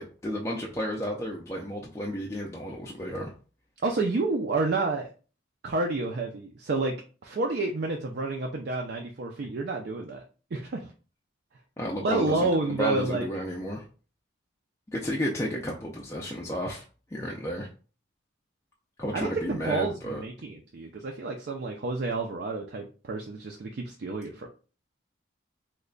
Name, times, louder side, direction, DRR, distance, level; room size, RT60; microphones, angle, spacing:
voice 1, 0.0-3.3 11.8-13.8 14.9-16.8 17.1-17.7 19.0-20.2, equal, 15° left, -2 dB, 0.4 m, -32 dB
voice 2, 3.8-5.1 5.6-6.9 7.2-10.2 10.5-10.9 12.0-13.3 19.1-24.5, right 3 dB, 55° right, 2 dB, 0.4 m, -29 dB
3.2 x 2.2 x 3.8 m, 0.37 s
head